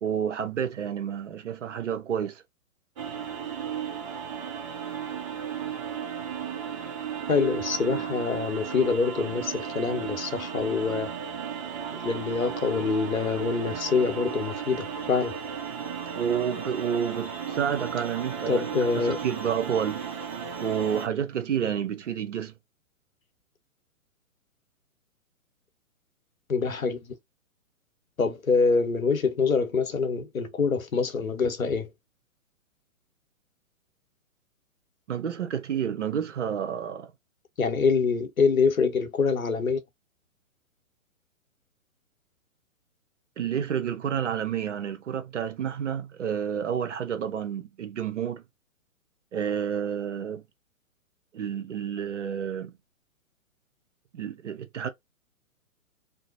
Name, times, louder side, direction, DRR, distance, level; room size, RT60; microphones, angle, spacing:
voice 1, 0.0-2.4 16.1-18.7 19.0-20.0 20.6-22.6 35.1-37.1 43.4-48.4 49.3-50.4 51.3-52.7 54.1-54.9, right 8 dB, 60° right, 0.7 m, -30 dB
sound 1, 3.0-21.1, right 7 dB, 25° right, 0.7 m, -35 dB
voice 2, 7.3-11.1 11.9-15.4 18.5-19.2 26.5-27.2 28.2-31.9 37.6-39.8, left 5 dB, 75° left, 0.8 m, -25 dB
2.6 x 2.1 x 2.5 m
figure-of-eight pair, 120°, 42 cm